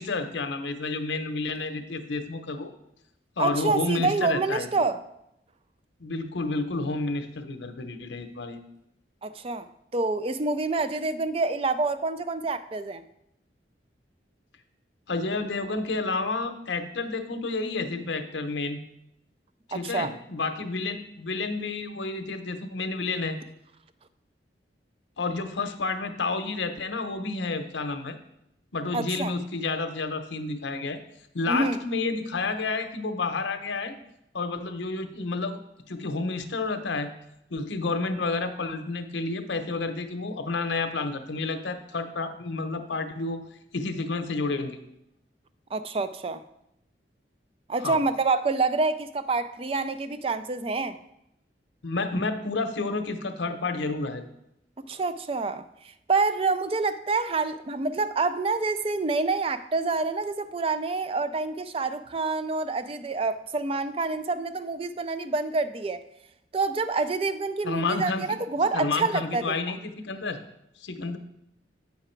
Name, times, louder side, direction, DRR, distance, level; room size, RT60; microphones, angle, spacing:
voice 1, 0.0-2.7 3.4-4.7 6.0-8.6 15.1-18.8 19.7-23.4 25.2-28.2 28.7-31.0 31.3-34.0 34.3-35.6 35.9-37.1 37.5-43.4 43.7-44.8 47.8-48.0 51.8-54.2 67.6-68.4 68.7-70.4 70.8-71.2, left 3 dB, 80° left, 8 dB, 0.8 m, -30 dB
voice 2, 3.4-5.0 9.2-9.7 9.9-13.0 19.7-20.1 28.9-29.3 31.5-31.8 45.7-46.4 47.7-51.0 54.9-55.6 56.1-66.0 66.5-69.7, right 3 dB, 30° right, 12 dB, 0.4 m, -27 dB
7.8 x 5.8 x 4.4 m, 0.81 s
head